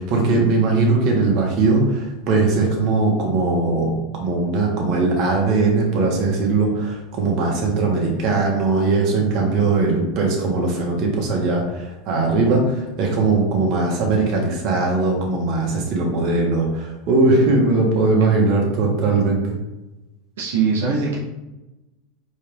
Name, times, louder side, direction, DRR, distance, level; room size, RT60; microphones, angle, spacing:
voice 1, 0.0-19.6, right 3 dB, 50° right, -1 dB, 1.5 m, -20 dB
voice 2, 20.4-21.2, right 5 dB, 85° right, -3 dB, 0.8 m, -21 dB
4.5 x 3.3 x 3.4 m, 1.0 s
supercardioid pair, 115°, 0 cm